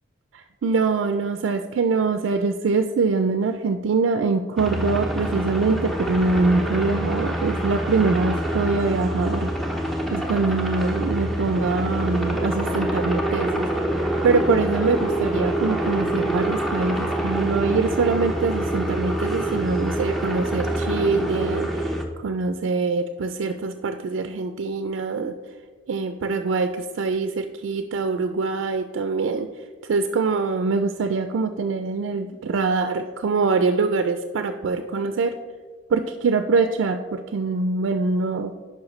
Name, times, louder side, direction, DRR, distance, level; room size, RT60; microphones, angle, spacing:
voice 1, 0.3-9.5 10.1-13.7 14.2-21.9 22.2-25.3 25.9-29.5 29.9-35.4 35.9-38.5, right 4 dB, 75° right, 8 dB, 0.4 m, -24 dB
sound 1, 4.6-22.0, right 1 dB, ahead, 0.6 m, -26 dB
9.6 x 5.6 x 3.1 m, 1.5 s
head